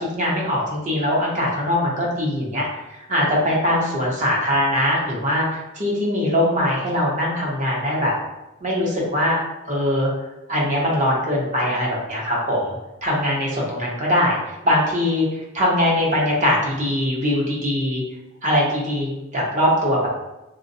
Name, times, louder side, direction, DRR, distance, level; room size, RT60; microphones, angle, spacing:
voice 1, 0.0-8.1 8.6-9.4 9.7-10.1 10.5-12.8 13.0-18.0 18.4-20.1, left 1 dB, 35° right, -3 dB, 0.9 m, -21 dB
3.9 x 2.3 x 2.7 m, 0.97 s
head